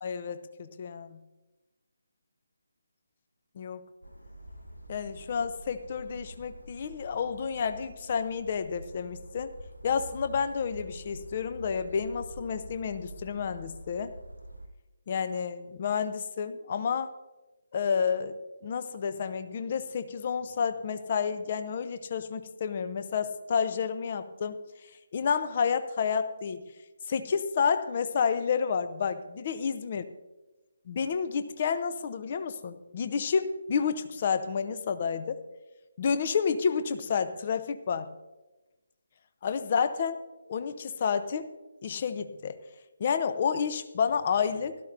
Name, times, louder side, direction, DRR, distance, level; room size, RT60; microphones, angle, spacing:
voice 1, 0.0-1.2 3.6-3.9 4.9-9.5 9.8-14.1 15.1-17.1 17.7-18.4 18.6-24.6 25.1-26.7 27.1-30.0 30.9-35.4 36.0-38.1 39.4-40.2 40.5-41.5 41.8-42.6 43.0-44.8, left 6 dB, 35° left, 11 dB, 0.7 m, -30 dB
sound 1, 4.0-14.7, right 1 dB, 90° left, 1.4 m, -47 dB
17.0 x 12.5 x 2.6 m, 1.1 s
figure-of-eight pair, 150°, 0 cm